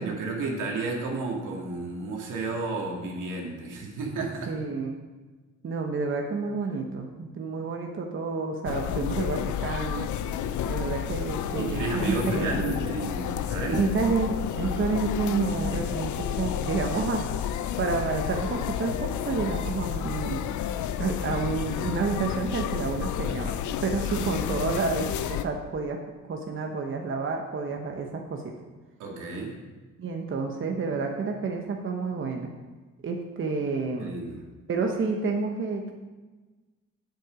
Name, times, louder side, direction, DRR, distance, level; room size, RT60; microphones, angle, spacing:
voice 1, 0.0-4.5 11.6-13.9 14.6-14.9 24.0-24.2 29.0-29.5 34.0-34.5, right 3 dB, 85° right, -1 dB, 2.1 m, -32 dB
voice 2, 4.5-5.0 5.6-10.1 10.6-12.7 13.7-17.3 17.8-20.4 21.0-26.0 26.3-28.4 30.0-32.5 33.0-34.1 34.7-35.9, right 4 dB, 40° right, 2 dB, 1.0 m, -29 dB
sound 1, 8.7-25.4, left 9 dB, 75° left, 0.6 m, -31 dB
7.8 x 7.7 x 5.1 m, 1.3 s
cardioid pair, 90°, 30 cm